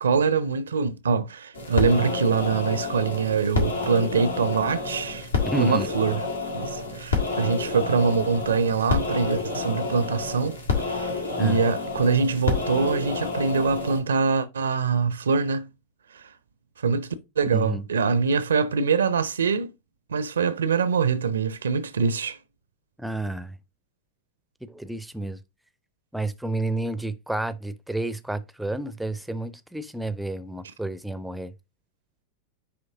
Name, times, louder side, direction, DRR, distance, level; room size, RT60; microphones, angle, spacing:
voice 1, 0.0-5.3 5.6-6.1 6.5-10.6 10.9-15.6 16.8-17.1 17.4-19.7 20.1-22.4, right 5 dB, 70° right, 0.6 m, -24 dB
sound 1, 1.5-14.0, left 4 dB, 75° left, 2.1 m, -29 dB
voice 2, 5.4-5.9 11.4-11.6 17.5-17.8 23.0-23.6 24.6-25.4 26.1-31.5, right 1 dB, ahead, 0.6 m, -30 dB
9.6 x 3.2 x 3.6 m
figure-of-eight pair, 90°, 0 cm